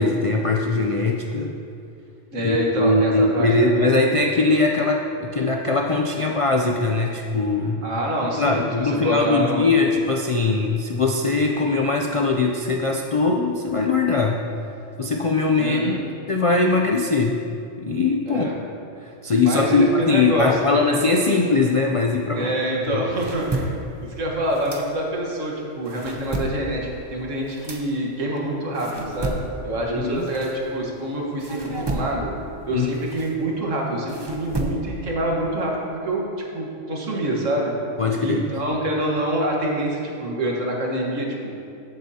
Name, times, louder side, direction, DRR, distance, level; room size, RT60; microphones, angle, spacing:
voice 1, 0.0-1.6 2.4-7.8 8.4-14.4 15.0-16.0 16.3-17.4 17.8-18.5 19.0-22.5 22.9-23.1 29.9-30.3 32.7-32.9 38.0-38.5, left 3 dB, 60° left, 1 dB, 0.3 m, -21 dB
voice 2, 2.3-3.9 7.8-9.7 15.6-16.0 18.3-18.5 19.4-20.8 21.3-21.4 22.4-23.8 24.2-32.3 32.7-35.8 36.0-37.7 38.2-41.5, right 1 dB, 85° right, -2 dB, 1.8 m, -26 dB
sound 1, 22.8-25.4 25.7-31.0 31.4-35.1, right 1 dB, 25° right, 0.6 m, -32 dB
14.0 x 7.9 x 2.8 m, 2.6 s
omnidirectional pair, 1.3 m